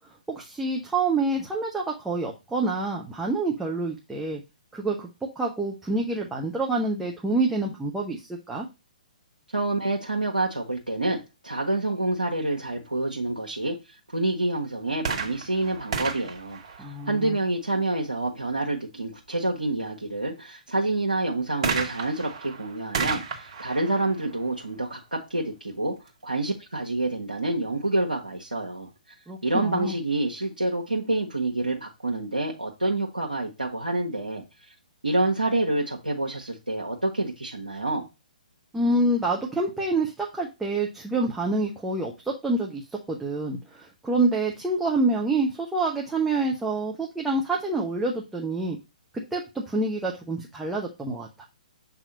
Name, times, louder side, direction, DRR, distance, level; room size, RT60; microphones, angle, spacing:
voice 1, 0.3-4.4 4.7-8.7 16.8-17.4 29.3-30.0 38.7-48.8 49.1-51.5, right 2 dB, 5° right, -2 dB, 0.7 m, -27 dB
voice 2, 9.5-11.2 11.4-16.6 17.0-25.9 26.2-28.9 29.4-34.4 35.0-38.1, right 2 dB, 85° right, -1 dB, 1.0 m, -27 dB
sound 1, 15.0-17.6 21.6-25.3 26.1-26.2, right 5 dB, 45° right, 1.3 m, -33 dB
7.2 x 2.8 x 5.2 m, 0.26 s
figure-of-eight pair, 125°, 5 cm